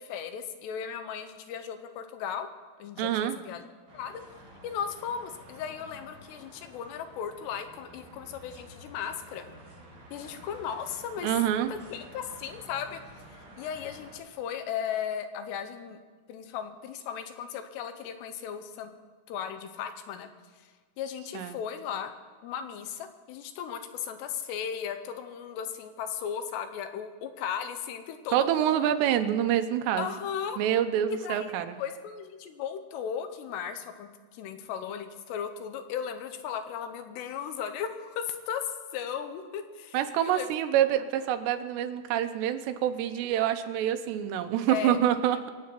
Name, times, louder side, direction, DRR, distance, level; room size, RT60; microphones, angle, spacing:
voice 1, 0.0-2.5 2.8-3.6 3.9-4.2 4.6-9.5 10.1-11.3 11.7-13.0 13.3-16.0 16.3-18.9 19.3-22.2 22.4-28.9 30.0-30.6 31.1-40.5 44.7-45.0, left 8 dB, 85° left, 8 dB, 3.0 m, -36 dB
voice 2, 3.0-3.4 11.2-11.7 21.3-21.6 28.3-30.1 30.6-31.8 39.9-45.5, right 10 dB, 90° right, 8 dB, 2.9 m, -26 dB
sound 1, 3.9-14.2, right 1 dB, 50° right, 6.0 m, -51 dB
25.5 x 8.6 x 4.5 m, 1.6 s
omnidirectional pair, 4.9 m